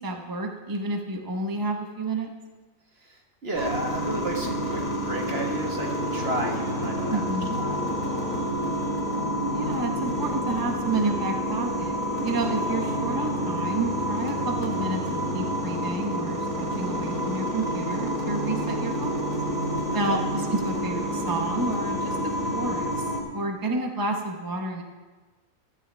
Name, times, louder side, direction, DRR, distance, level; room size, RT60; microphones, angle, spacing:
voice 1, 0.0-2.3 7.1-7.6 9.5-12.0 12.2-19.1 19.9-23.1 23.3-24.8, right 2 dB, 20° right, 3 dB, 0.9 m, -30 dB
voice 2, 2.9-7.8 19.9-20.2, right 2 dB, 50° right, 1 dB, 1.7 m, -33 dB
sound 1, 3.5-23.2, equal, 90° left, 3.2 m, -28 dB
15.5 x 13.0 x 3.4 m, 1.3 s
omnidirectional pair, 1.4 m